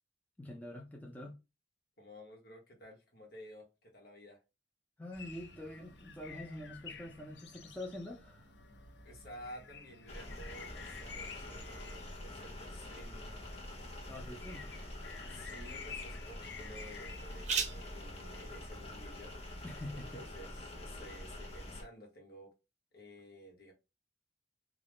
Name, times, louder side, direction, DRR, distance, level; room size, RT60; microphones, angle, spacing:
voice 1, 0.4-1.4 5.0-8.5 14.1-14.7 19.6-20.2, left 1 dB, 10° left, 0.5 m, -45 dB
voice 2, 2.0-4.4 9.0-13.4 15.3-19.6 19.9-22.5 22.9-23.7, equal, 55° left, 1.2 m, -53 dB
sound 1, 5.1-17.5, left 5 dB, 75° left, 0.7 m, -51 dB
sound 2, 10.1-21.8, left 1 dB, 35° left, 0.9 m, -46 dB
sound 3, 13.4-20.9, right 5 dB, 40° right, 0.7 m, -45 dB
3.8 x 2.4 x 3.4 m
head